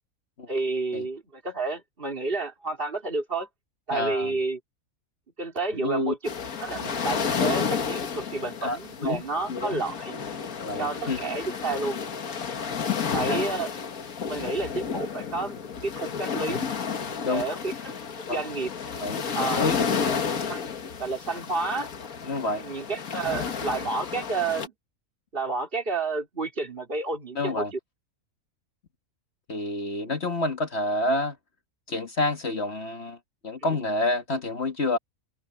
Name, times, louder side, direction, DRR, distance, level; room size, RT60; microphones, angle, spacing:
voice 1, 0.5-3.5 3.9-4.6 5.4-6.2 6.6-10.2 10.8-12.0 13.1-13.7 14.3-16.6 17.2-17.9 18.3-18.7 19.4-20.1 20.5-20.7 21.0-21.9 22.6-24.7 25.3-27.8, right 3 dB, 40° right, 3.8 m, -30 dB
voice 2, 3.9-4.3 5.7-6.1 8.6-9.2 9.5-9.8 10.6-11.2 12.7-12.8 13.3-13.4 17.2-17.4 18.3-18.4 19.0-19.8 22.2-22.6 27.4-27.7 29.5-31.4 31.9-33.2 33.4-35.0, left 2 dB, 50° left, 1.9 m, -28 dB
sound 1, 6.3-24.7, left 6 dB, 90° left, 1.9 m, -31 dB
open air
omnidirectional pair, 1.5 m